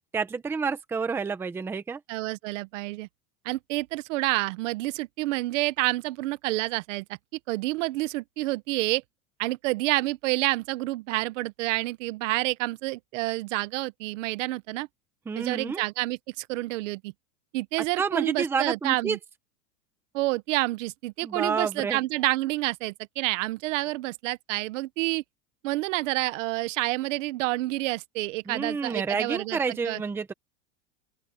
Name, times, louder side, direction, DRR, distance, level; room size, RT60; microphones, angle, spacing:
voice 1, 0.1-2.0 15.3-15.8 18.0-19.2 21.2-22.0 28.5-30.3, right 5 dB, 5° right, 0.6 m, -29 dB
voice 2, 2.1-3.1 3.4-7.0 7.5-9.0 9.4-14.9 15.4-17.1 17.5-19.2 20.1-25.2 25.6-29.6 29.8-30.0, right 20 dB, 65° right, 1.0 m, -28 dB
open air
supercardioid pair, 170°, 41 cm